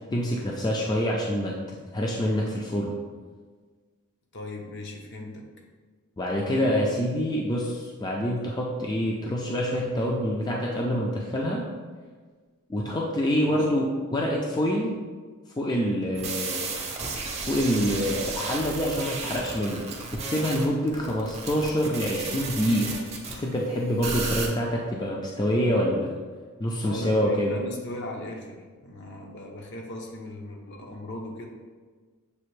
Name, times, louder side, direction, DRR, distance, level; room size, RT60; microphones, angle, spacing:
voice 1, 0.1-2.9 6.2-11.7 12.7-15.0 15.6-16.7 17.5-19.9 20.1-23.0 23.3-26.1 26.6-27.6, equal, 20° left, -2 dB, 0.4 m, -26 dB
voice 2, 4.3-5.5 6.5-6.9 13.4-13.7 26.8-31.5, left 1 dB, 55° left, 1 dB, 0.6 m, -38 dB
sound 1, 16.2-23.4 24.0-24.5, right 4 dB, 30° right, 0.6 m, -33 dB
6.6 x 2.5 x 3.1 m, 1.5 s
head